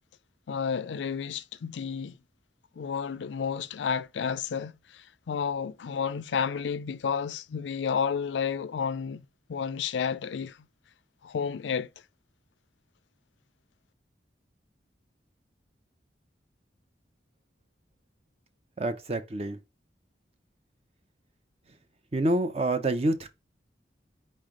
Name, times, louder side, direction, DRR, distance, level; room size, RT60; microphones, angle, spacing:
voice 1, 0.5-2.2 2.8-9.2 9.5-10.6 11.2-11.9, left 6 dB, 90° left, 0.4 m, -31 dB
voice 2, 18.8-19.6 22.1-23.3, right 1 dB, 35° right, 0.6 m, -27 dB
4.5 x 3.3 x 3.6 m
head